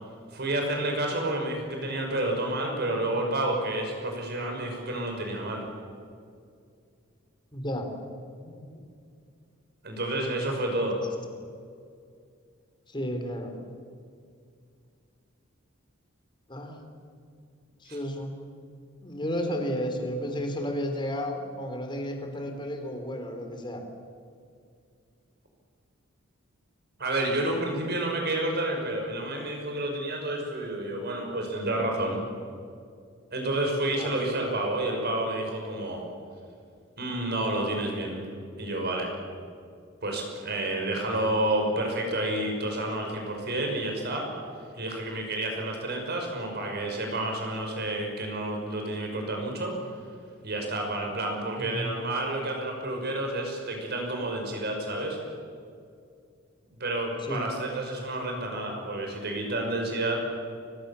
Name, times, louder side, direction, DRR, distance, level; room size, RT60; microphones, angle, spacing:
voice 1, 0.3-5.6 9.8-11.0 17.9-18.0 27.0-32.2 33.3-36.0 37.0-38.2 38.6-39.1 40.0-44.3 44.7-49.7 50.4-55.2 56.8-60.2, right 1 dB, 50° right, 2 dB, 5.7 m, -30 dB
voice 2, 7.5-7.9 8.4-8.8 12.9-13.5 16.5-16.9 17.8-18.4 19.0-23.8 33.9-34.2 51.6-52.0 57.2-57.5, equal, 25° left, 4 dB, 3.8 m, -33 dB
30.0 x 23.5 x 7.2 m, 2.3 s
head